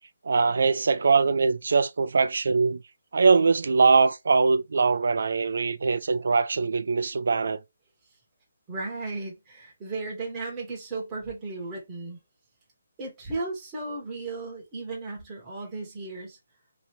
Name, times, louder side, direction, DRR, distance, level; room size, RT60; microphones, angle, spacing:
voice 1, 0.2-2.8 3.1-7.6, right 4 dB, 65° right, 0.4 m, -22 dB
voice 2, 8.7-12.2 13.0-16.4, right 3 dB, 15° right, 1.2 m, -35 dB
3.0 x 2.6 x 2.9 m
hypercardioid pair, 175°, 0 cm